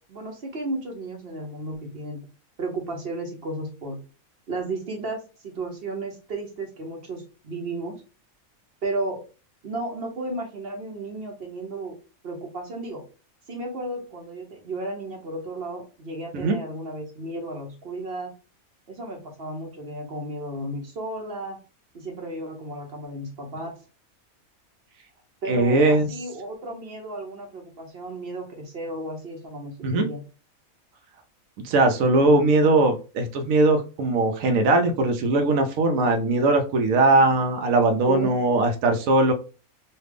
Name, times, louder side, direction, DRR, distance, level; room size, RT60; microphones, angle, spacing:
voice 1, 0.0-2.2 2.6-4.0 4.5-8.0 8.8-9.2 9.6-12.0 12.2-13.0 13.5-18.3 18.9-21.6 21.9-23.7 25.4-30.2 38.1-38.3, right 2 dB, 50° right, 2 dB, 0.8 m, -33 dB
voice 2, 25.5-26.1 29.8-30.1 31.6-39.3, right 2 dB, 75° right, 5 dB, 1.0 m, -20 dB
3.2 x 2.4 x 3.3 m, 0.34 s
omnidirectional pair, 1.5 m